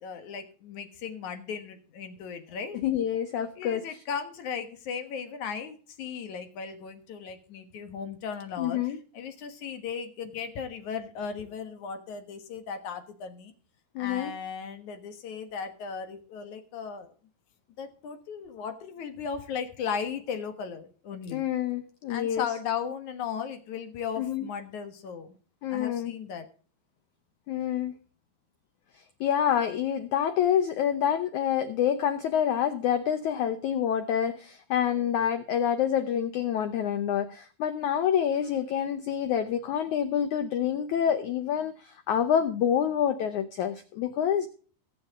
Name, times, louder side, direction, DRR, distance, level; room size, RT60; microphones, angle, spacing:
voice 1, 0.0-2.8 3.6-13.5 14.0-17.1 17.8-21.4 22.1-25.4 25.7-26.5, left 6 dB, 60° left, 7 dB, 2.4 m, -36 dB
voice 2, 2.8-3.8 8.6-9.0 13.9-14.3 21.3-22.5 24.2-24.4 25.6-26.1 27.5-27.9 29.2-44.5, left 9 dB, 85° left, 10 dB, 1.6 m, -27 dB
22.0 x 7.5 x 3.6 m, 0.40 s
omnidirectional pair, 4.7 m